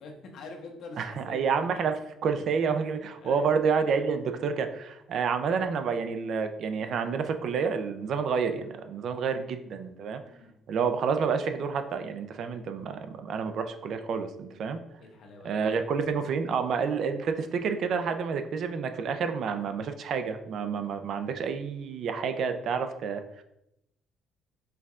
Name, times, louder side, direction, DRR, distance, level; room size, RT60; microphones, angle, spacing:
voice 1, 0.0-1.4 3.2-3.5 10.3-10.5 15.0-15.6, left 3 dB, 60° left, 3 dB, 0.8 m, -45 dB
voice 2, 1.0-10.2 10.7-14.8 15.4-23.4, right 6 dB, 55° right, 8 dB, 0.4 m, -29 dB
4.6 x 3.5 x 2.4 m, 0.83 s
cardioid pair, 125°, 0 cm